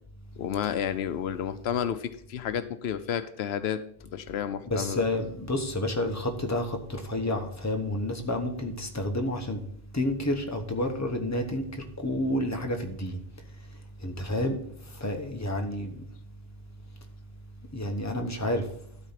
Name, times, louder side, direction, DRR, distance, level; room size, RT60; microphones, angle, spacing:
voice 1, 0.4-3.8 4.1-5.1, left 9 dB, 85° left, 12 dB, 0.9 m, -31 dB
voice 2, 4.7-9.6 9.9-13.2 14.0-14.6 14.9-15.9 17.7-18.7, left 1 dB, 15° left, 3 dB, 1.1 m, -30 dB
12.5 x 4.2 x 5.8 m, 0.67 s
omnidirectional pair, 1.0 m